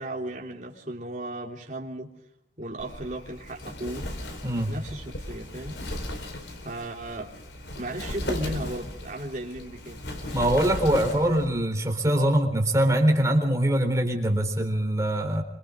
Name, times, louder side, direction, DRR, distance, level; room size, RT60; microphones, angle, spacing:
voice 1, 0.0-2.1 2.6-4.1 4.7-5.8 6.6-7.3 7.8-10.0, right 1 dB, 45° right, -2 dB, 3.5 m, -35 dB
Wind, 2.8-11.5, left 1 dB, 85° left, 4.5 m, -36 dB
voice 2, 4.4-4.7 10.3-15.4, right 1 dB, 15° right, 3 dB, 3.8 m, -23 dB
28.0 x 26.0 x 3.8 m, 0.76 s
head